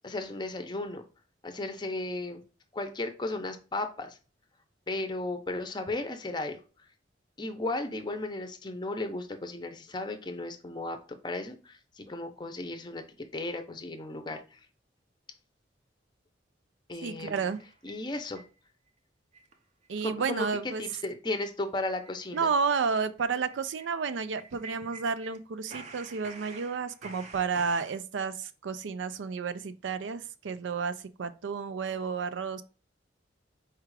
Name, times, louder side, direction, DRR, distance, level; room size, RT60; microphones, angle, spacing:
voice 1, 0.0-1.0 1.4-2.4 2.7-4.2 4.9-6.6 7.4-14.6 16.9-17.5 17.8-18.4 20.0-22.5, left 2 dB, 25° left, 0.6 m, -35 dB
voice 2, 17.0-17.6 19.9-20.8 22.3-32.6, right 5 dB, 85° right, 0.4 m, -31 dB
sound 1, 17.4-18.5 18.9-19.0 19.3-19.6 19.8-19.9 20.3-20.5 20.8-21.0 21.3-21.4 21.7-25.4 25.7-28.0, right 3 dB, 40° right, 0.6 m, -49 dB
4.6 x 2.4 x 4.7 m
head